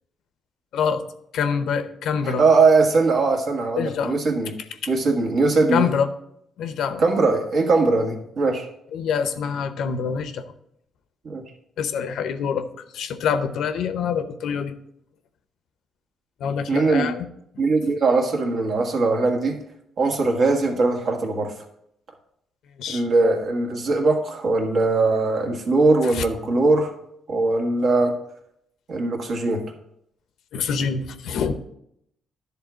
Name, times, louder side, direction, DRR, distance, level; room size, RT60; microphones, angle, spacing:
voice 1, 1.3-2.4 3.8-4.1 4.8-4.9 5.7-6.1 6.6-7.0 8.9-10.4 11.8-12.7 12.9-14.7 16.4-17.3 17.6-17.7 22.8-23.0 26.1-26.2 30.5-31.5, left 6 dB, 75° left, 10 dB, 0.7 m, -25 dB
voice 2, 2.2-4.6 4.9-5.9 7.0-8.7 11.2-11.4 16.7-17.1 17.6-19.6 20.0-21.5 22.9-26.9 27.3-28.1 28.9-29.6, right 3 dB, 60° right, 2 dB, 1.7 m, -20 dB
10.5 x 3.6 x 6.2 m, 0.75 s
cardioid pair, 90°, 0 cm